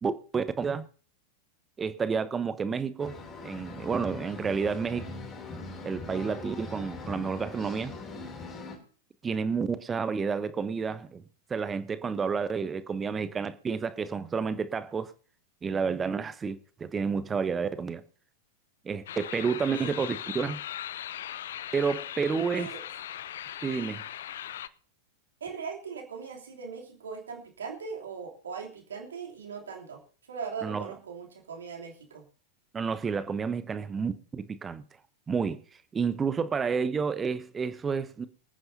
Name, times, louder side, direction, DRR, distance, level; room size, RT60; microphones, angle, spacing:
voice 1, 0.0-0.9 1.8-3.2 3.4-5.0 5.8-7.9 9.2-11.2 11.5-15.1 15.6-18.0 18.8-20.6 21.7-22.7 23.6-24.0 30.6-30.9 32.7-34.8 35.3-35.6 35.9-38.3, right 5 dB, 20° right, 0.9 m, -30 dB
sound 1, 3.0-8.8, left 3 dB, 25° left, 2.9 m, -41 dB
sound 2, 19.1-24.7, left 11 dB, 60° left, 0.5 m, -39 dB
voice 2, 25.4-30.0 30.3-32.2, right 6 dB, 65° right, 3.0 m, -39 dB
25.5 x 9.3 x 2.7 m
figure-of-eight pair, 90°, 0 cm